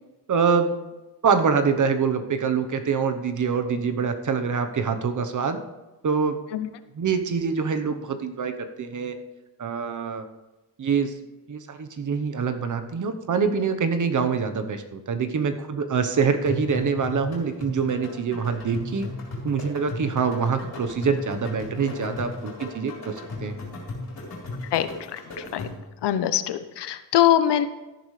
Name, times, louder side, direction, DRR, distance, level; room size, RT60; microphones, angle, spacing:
voice 1, 0.3-0.8 1.2-5.6 6.0-6.4 6.9-9.1 9.6-10.2 10.8-11.1 11.5-19.1 19.4-23.5, right 5 dB, 50° right, 8 dB, 1.0 m, -25 dB
sound 1, 16.5-26.0, left 2 dB, 60° left, 4.2 m, -36 dB
voice 2, 24.7-25.2 25.5-25.7 26.0-27.7, left 11 dB, 85° left, 12 dB, 0.8 m, -22 dB
13.5 x 11.0 x 3.3 m, 1.1 s
cardioid pair, 120°, 40 cm